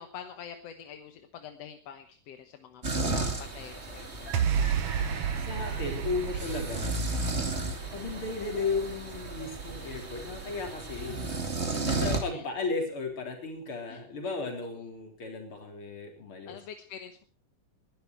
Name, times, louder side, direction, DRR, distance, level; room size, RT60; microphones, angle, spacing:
voice 1, 0.0-2.8 3.1-4.3 6.3-6.6 7.1-7.4 11.7-11.9 12.3-12.4 13.9-14.0 14.6-14.7 16.5-17.2, left 8 dB, 60° left, 7 dB, 1.8 m, -46 dB
sound 1, 2.8-12.2, right 2 dB, 20° right, 2.2 m, -34 dB
sound 2, 4.3-10.8, right 7 dB, 65° right, 1.5 m, -33 dB
voice 2, 5.4-6.9 7.9-11.5 11.8-16.6, left 4 dB, 40° left, 2 dB, 4.4 m, -35 dB
20.0 x 12.0 x 4.7 m, 0.40 s
omnidirectional pair, 3.9 m